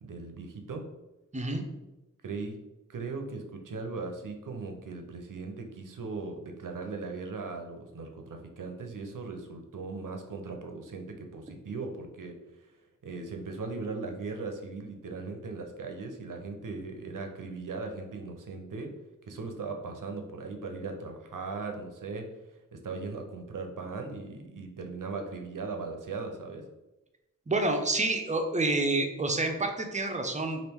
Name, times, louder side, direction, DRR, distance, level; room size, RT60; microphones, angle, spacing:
voice 1, 0.0-0.9 2.2-2.6 2.9-12.4 13.0-19.0 19.3-22.3 22.7-26.7, right 4 dB, 75° right, 4 dB, 0.6 m, -38 dB
voice 2, 1.3-1.7 27.5-30.6, right 2 dB, 25° right, 4 dB, 0.4 m, -28 dB
3.0 x 2.5 x 3.4 m, 1.0 s
wide cardioid pair, 75°, 32 cm